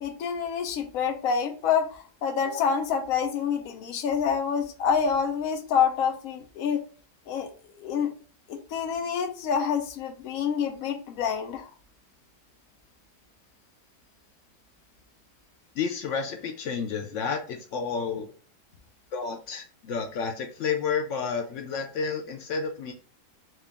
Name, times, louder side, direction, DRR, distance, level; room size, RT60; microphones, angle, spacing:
voice 1, 0.0-6.8 7.3-7.5 7.8-8.1 8.5-11.7, left 7 dB, 60° left, 1.0 m, -27 dB
voice 2, 15.8-18.3 19.1-22.9, left 5 dB, 85° left, 0.6 m, -30 dB
4.4 x 2.5 x 3.4 m
omnidirectional pair, 1.9 m